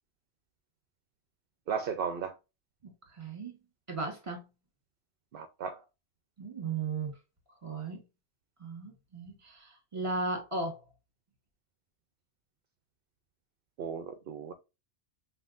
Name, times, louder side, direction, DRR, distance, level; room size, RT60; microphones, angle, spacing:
voice 1, 1.7-2.3 5.3-5.8 13.8-14.5, right 6 dB, 60° right, 0.7 m, -35 dB
voice 2, 2.8-3.6 3.9-4.4 6.4-7.1 7.6-8.0 8.6-10.8, right 3 dB, 30° right, 1.6 m, -36 dB
5.5 x 2.8 x 2.5 m
omnidirectional pair, 1.1 m